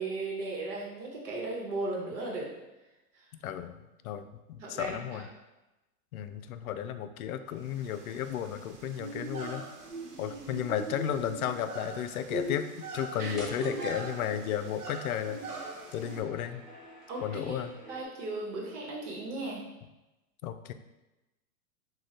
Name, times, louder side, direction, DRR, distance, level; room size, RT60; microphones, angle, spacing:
voice 1, 0.0-2.5 4.6-5.2 13.2-13.8 17.1-17.6 17.9-19.6, right 2 dB, 50° right, -2 dB, 1.1 m, -36 dB
voice 2, 3.4-3.8 4.0-5.3 6.1-9.6 10.2-16.6 17.2-17.7 20.4-20.7, left 9 dB, 65° left, 10 dB, 0.5 m, -34 dB
sound 1, 7.6-16.2, right 3 dB, 80° right, 1.0 m, -41 dB
sound 2, 13.4-18.0, right 1 dB, ahead, 0.3 m, -49 dB
6.1 x 2.4 x 3.3 m, 1.0 s
hypercardioid pair, 115°, 46 cm